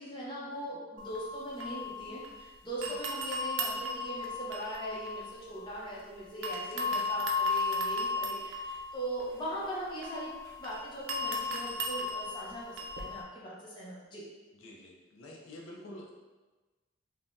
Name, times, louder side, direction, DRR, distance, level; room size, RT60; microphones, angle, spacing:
voice 1, 0.0-14.2, right 1 dB, 25° left, -6 dB, 0.7 m, -40 dB
sound 1, 1.0-2.5 2.8-6.0 6.4-13.2, left 2 dB, 90° right, 0.4 m, -35 dB
voice 2, 14.5-16.1, left 1 dB, 85° left, -1 dB, 0.5 m, -48 dB
3.3 x 2.1 x 2.6 m, 1.2 s
head